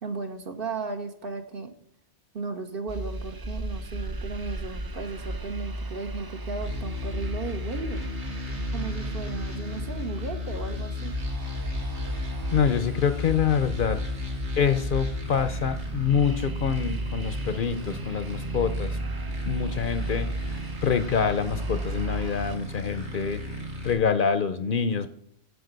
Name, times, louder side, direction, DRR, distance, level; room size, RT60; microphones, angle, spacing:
voice 1, 0.0-1.7 2.3-8.0 8.7-11.2, right 4 dB, 55° right, 7 dB, 1.2 m, -35 dB
sound 1, 2.9-22.6, right 2 dB, 30° right, 0.5 m, -34 dB
sound 2, 6.6-23.9, left 2 dB, 85° right, 2.2 m, -35 dB
voice 2, 12.5-14.0 14.6-19.0 19.4-23.4 23.8-25.1, left 7 dB, 55° left, 12 dB, 0.7 m, -26 dB
12.5 x 4.9 x 5.2 m, 0.69 s
omnidirectional pair, 1.1 m